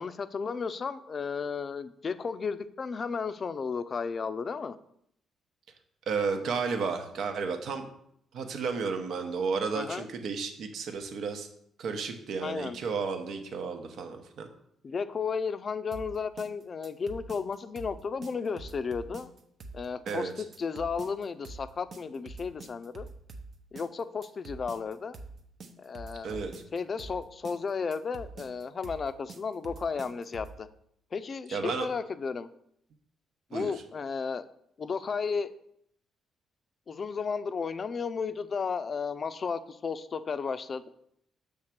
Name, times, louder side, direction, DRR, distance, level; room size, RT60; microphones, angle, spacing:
voice 1, 0.0-4.8 9.7-10.1 12.4-12.8 14.8-19.3 19.7-23.1 23.7-25.2 25.8-26.4 26.7-30.7 31.1-32.5 33.5-34.5 34.8-35.5 36.9-40.9, left 5 dB, 40° left, 12 dB, 0.4 m, -33 dB
voice 2, 6.1-7.9 8.3-11.5 11.8-14.5 20.1-20.3 26.2-26.5 31.5-31.9 33.5-33.7, right 5 dB, 70° right, 6 dB, 0.9 m, -32 dB
sound 1, 15.9-30.6, right 3 dB, 50° right, 0.8 m, -45 dB
6.4 x 3.6 x 5.9 m, 0.71 s
cardioid pair, 90°, 0 cm